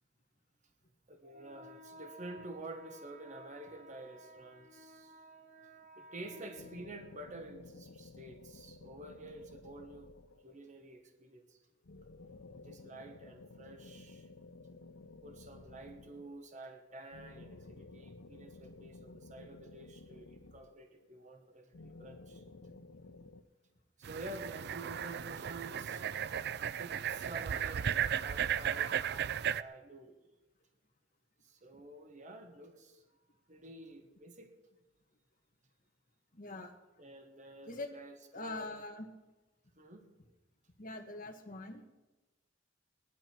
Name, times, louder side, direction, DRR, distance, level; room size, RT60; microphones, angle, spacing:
voice 1, 1.1-10.1 10.4-11.6 12.6-14.3 15.2-22.4 24.0-26.1 26.8-30.2 31.4-33.0 33.5-34.5 37.0-38.7 39.8-40.1, right 2 dB, 40° right, 5 dB, 1.5 m, -49 dB
sound 1, 6.6-10.7 11.8-16.5 17.1-21.1 21.7-23.4, left 3 dB, 80° left, 0.7 m, -54 dB
sound 2, 24.0-29.6, right 9 dB, 55° right, 0.4 m, -35 dB
voice 2, 36.3-36.7 37.7-37.9 38.3-39.0 40.8-41.8, left 2 dB, 45° left, 4 dB, 1.6 m, -43 dB
18.0 x 11.5 x 4.6 m, 1.1 s
head